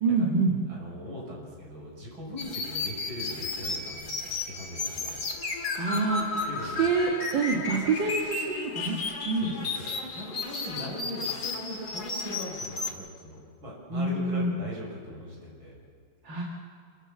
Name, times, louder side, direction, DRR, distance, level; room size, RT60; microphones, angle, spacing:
voice 1, 0.0-0.6 5.8-9.0 9.2-9.5 13.9-14.6 16.2-16.4, right 4 dB, 65° right, -1 dB, 2.4 m, -27 dB
voice 2, 0.7-4.2 4.5-5.2 6.5-6.9 7.8-7.9 9.4-15.8, left 1 dB, 85° right, -3 dB, 7.0 m, -40 dB
sound 1, 2.4-12.9, left 3 dB, 50° left, 2.6 m, -33 dB
27.5 x 13.5 x 7.5 m, 2.3 s
omnidirectional pair, 2.2 m